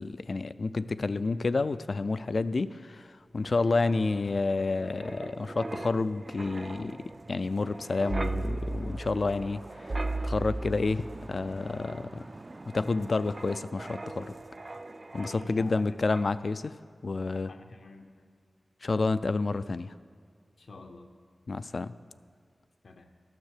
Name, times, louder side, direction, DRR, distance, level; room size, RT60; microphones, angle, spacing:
voice 1, 0.0-9.9 10.2-12.2 12.7-14.3 15.1-16.7 17.0-17.5 18.8-19.9 21.5-22.0, left 3 dB, 60° left, 15 dB, 0.3 m, -29 dB
Wind, 3.4-15.8 16.1-16.4, right 2 dB, 35° right, 0.3 m, -38 dB
voice 2, 15.2-15.9 17.5-18.1 20.6-21.1 22.8-23.1, left 3 dB, 75° left, 6 dB, 0.8 m, -47 dB
12.5 x 6.6 x 6.6 m, 2.2 s
wide cardioid pair, 75°, 0 cm